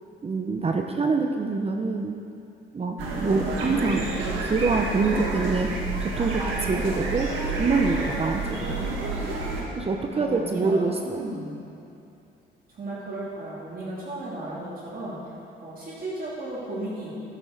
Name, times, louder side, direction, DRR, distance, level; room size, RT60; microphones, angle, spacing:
voice 1, 0.2-2.2 2.7-4.1 4.4-5.7 6.0-7.3 7.6-8.8 9.8-11.2, right 4 dB, 30° right, 4 dB, 0.7 m, -25 dB
sound 1, 3.0-9.6, right 3 dB, 85° right, 1.8 m, -29 dB
voice 2, 10.1-11.5 12.7-15.2 15.6-17.1, right 1 dB, 45° right, -7 dB, 2.9 m, -35 dB
12.0 x 9.7 x 3.9 m, 2.7 s
cardioid pair, 90°, 20 cm